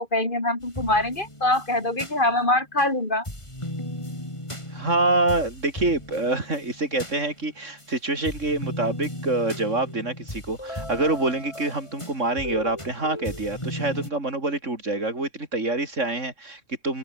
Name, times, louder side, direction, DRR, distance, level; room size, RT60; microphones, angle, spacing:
voice 1, 0.0-3.3, left 1 dB, 40° left, 4.2 m, -24 dB
sound 1, 0.6-2.9 3.2-7.9 8.2-14.1, left 1 dB, 25° left, 7.3 m, -36 dB
voice 2, 4.7-17.0, right 2 dB, 80° right, 5.1 m, -26 dB
omnidirectional pair, 1.3 m